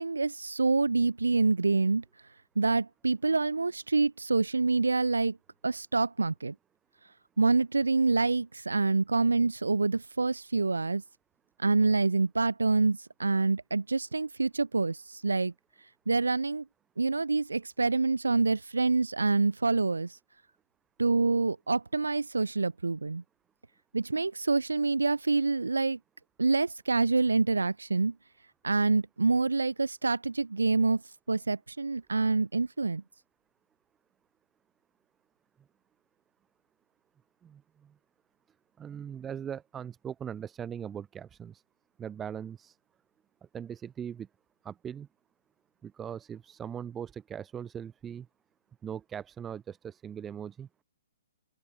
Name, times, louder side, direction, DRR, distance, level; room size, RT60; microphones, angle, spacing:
voice 1, 0.0-2.0 2.6-5.4 5.6-6.5 7.4-11.0 11.6-15.5 16.1-16.7 17.0-20.2 21.0-23.2 23.9-26.0 26.4-28.2 28.6-31.0 31.3-33.0, right 3 dB, 70° right, 2.0 m, -26 dB
voice 2, 37.4-37.9 38.8-41.6 42.0-42.8 43.5-44.3 44.6-45.1 45.8-48.3 48.8-50.7, right 8 dB, 15° right, 0.9 m, -40 dB
open air
figure-of-eight pair, 120°, 0 cm